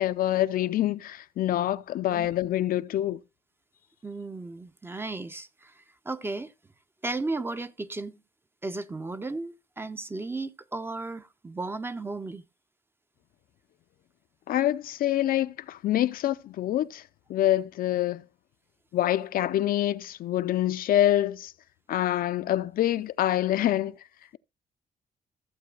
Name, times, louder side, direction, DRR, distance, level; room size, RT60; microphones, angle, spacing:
voice 1, 0.0-3.2 14.5-17.0 17.3-18.2 18.9-21.5 21.9-24.0, left 13 dB, 65° left, 0.4 m, -26 dB
voice 2, 4.0-6.5 7.0-8.2 8.6-12.4, right 3 dB, 15° right, 0.5 m, -35 dB
15.0 x 7.7 x 2.4 m
cardioid pair, 130°, 16 cm